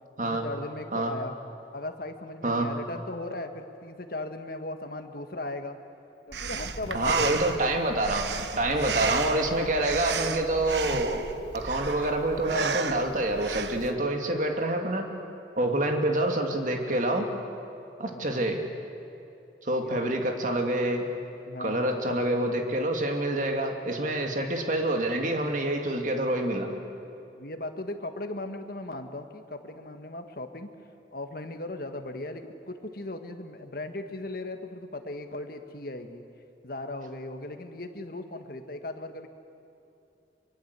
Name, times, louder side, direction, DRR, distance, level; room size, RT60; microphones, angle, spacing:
voice 1, 0.2-1.3 1.7-5.8 6.3-7.6 18.1-18.5 19.8-20.1 21.5-22.2 27.4-30.7 31.1-36.2 36.6-39.3, left 2 dB, 55° left, 6 dB, 1.7 m, -37 dB
Breathing, 6.3-13.9, right 5 dB, 75° right, 1.1 m, -34 dB
voice 2, 6.9-8.3 8.6-11.3 11.5-15.0 15.6-17.3 18.0-18.6 19.6-21.1 21.6-26.7, right 1 dB, 45° right, 3 dB, 2.4 m, -27 dB
24.5 x 23.5 x 8.3 m, 2.7 s
head